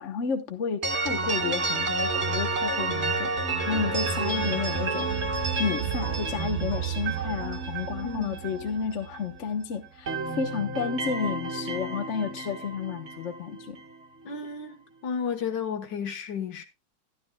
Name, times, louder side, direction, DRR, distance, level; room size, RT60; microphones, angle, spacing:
voice 1, 0.0-3.3 3.7-5.1 5.6-13.8, left 6 dB, 45° left, 1.3 m, -31 dB
sound 1, 0.8-9.6 9.8-14.0, right 3 dB, 40° right, 1.9 m, -30 dB
voice 2, 8.0-8.4 14.3-16.6, left 6 dB, 80° left, 2.0 m, -33 dB
12.5 x 12.5 x 2.3 m
omnidirectional pair, 1.9 m